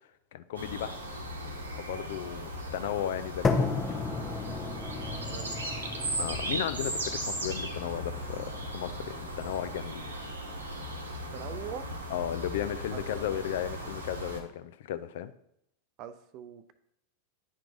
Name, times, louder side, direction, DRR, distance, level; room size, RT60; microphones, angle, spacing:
voice 1, 0.3-1.0 1.8-3.8 6.2-10.3 12.1-15.3, left 10 dB, 55° left, 12 dB, 0.4 m, -35 dB
sound 1, 0.5-14.4, right 1 dB, 75° right, 1.0 m, -37 dB
sound 2, 3.4-11.5, left 4 dB, 20° left, 0.7 m, -35 dB
voice 2, 5.3-5.6 11.3-11.9 12.9-13.0 16.0-16.7, right 8 dB, 40° right, 11 dB, 0.5 m, -42 dB
11.0 x 4.5 x 2.5 m, 0.79 s
figure-of-eight pair, 90°, 0 cm